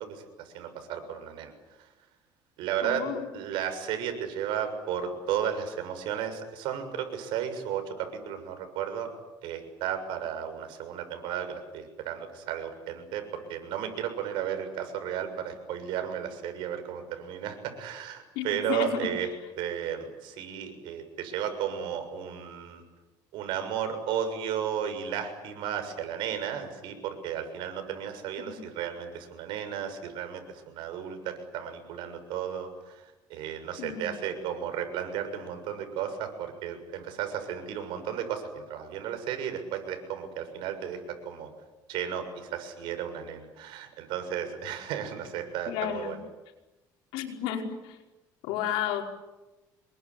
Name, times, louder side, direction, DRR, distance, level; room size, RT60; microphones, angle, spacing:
voice 1, 0.0-1.5 1.8-1.9 2.6-3.0 3.3-9.1 9.4-19.3 19.6-22.8 23.3-41.5 41.9-46.2, right 9 dB, 75° right, 7 dB, 6.8 m, -34 dB
voice 2, 2.8-3.3 18.4-19.1 28.5-28.6 33.8-34.1 45.7-46.2 47.1-48.0 48.4-49.0, left 10 dB, 90° left, 2 dB, 5.1 m, -32 dB
27.0 x 22.0 x 9.9 m, 1.1 s
cardioid pair, 120°, 8 cm